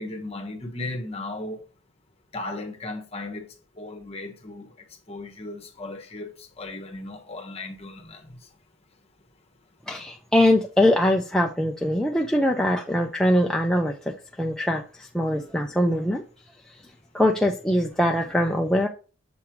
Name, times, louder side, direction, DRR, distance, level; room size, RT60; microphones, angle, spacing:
voice 1, 0.0-1.6 2.3-4.7 5.1-8.4, left 2 dB, 30° left, 1.2 m, -36 dB
voice 2, 9.9-13.9 14.4-16.2 17.1-18.9, left 1 dB, 5° left, 0.5 m, -22 dB
7.1 x 3.3 x 4.6 m
head